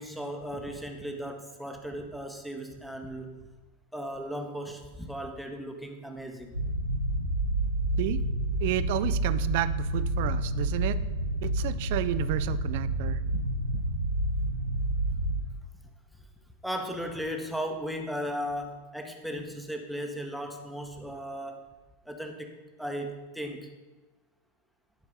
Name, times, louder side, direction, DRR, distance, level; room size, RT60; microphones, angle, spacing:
voice 1, 0.0-3.5 3.9-6.6 13.3-13.8 16.6-21.7 22.1-23.7, equal, ahead, 4 dB, 0.9 m, -36 dB
sound 1, 6.5-15.4, right 1 dB, 85° right, 0.8 m, -29 dB
voice 2, 8.6-11.0 11.4-13.2, right 14 dB, 50° right, 14 dB, 0.4 m, -31 dB
11.5 x 4.6 x 5.3 m, 1.2 s
figure-of-eight pair, 90°, 0 cm